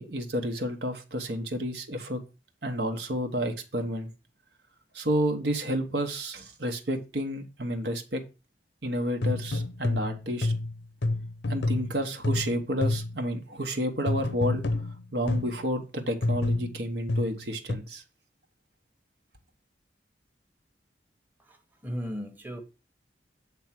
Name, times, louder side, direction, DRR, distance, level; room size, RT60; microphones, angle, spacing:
voice 1, 0.0-2.2 2.6-4.1 4.9-8.2 8.8-10.5 11.5-14.6 15.1-18.0, equal, 65° right, 1.3 m, -30 dB
sound 1, 9.2-13.3 14.1-15.6 16.2-17.7, left 2 dB, 85° left, 0.7 m, -29 dB
voice 2, 21.8-22.6, equal, 10° right, 1.1 m, -35 dB
8.1 x 3.6 x 5.9 m
head